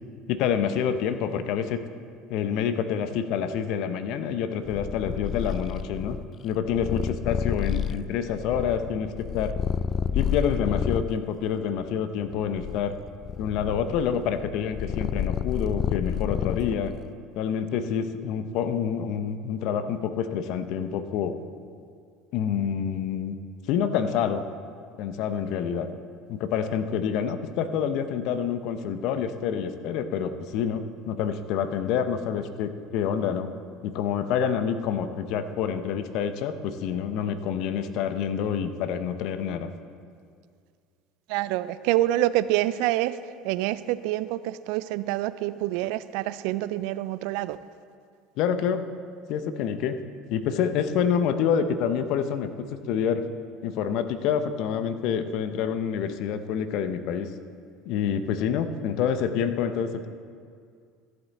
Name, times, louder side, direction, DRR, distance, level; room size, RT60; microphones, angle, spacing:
voice 1, 0.3-1.8 2.3-6.2 6.4-9.5 10.1-13.0 13.4-16.9 17.3-21.4 22.3-23.4 23.7-24.4 25.0-25.9 26.3-33.5 33.8-39.7 48.4-48.8 49.3-50.0 50.3-52.5 52.9-53.2 53.6-57.3 57.9-60.1, left 8 dB, 65° left, 10 dB, 0.7 m, -27 dB
Purr, 4.6-11.2 11.8-17.1, left 8 dB, 45° left, 0.3 m, -30 dB
voice 2, 41.3-43.2 43.4-47.6, right 15 dB, 70° right, 16 dB, 0.3 m, -26 dB
14.0 x 8.0 x 4.1 m, 2.2 s
hypercardioid pair, 80°, 0 cm